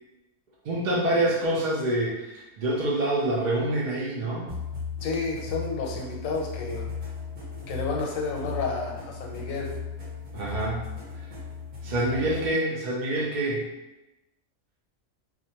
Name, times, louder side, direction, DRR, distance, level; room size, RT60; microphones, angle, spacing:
voice 1, 0.6-4.6 10.3-10.9 11.8-13.7, right 1 dB, 80° right, -4 dB, 0.4 m, -26 dB
sound 1, 4.5-12.5, left 5 dB, 45° right, 0.7 m, -36 dB
voice 2, 5.0-6.9 7.7-9.7, left 4 dB, 90° left, -1 dB, 1.0 m, -31 dB
2.4 x 2.1 x 2.8 m, 0.99 s
omnidirectional pair, 1.4 m